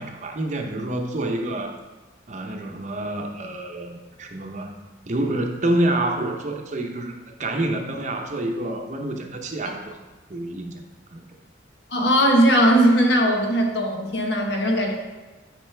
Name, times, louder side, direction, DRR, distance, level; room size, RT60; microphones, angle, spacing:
voice 1, 0.0-1.7 2.3-4.7 5.1-7.1 7.4-10.0 10.3-10.8 11.1-11.3, right 1 dB, 40° right, 3 dB, 0.7 m, -27 dB
voice 2, 11.9-14.9, equal, 65° left, 1 dB, 1.1 m, -19 dB
9.0 x 5.2 x 3.3 m, 1.2 s
head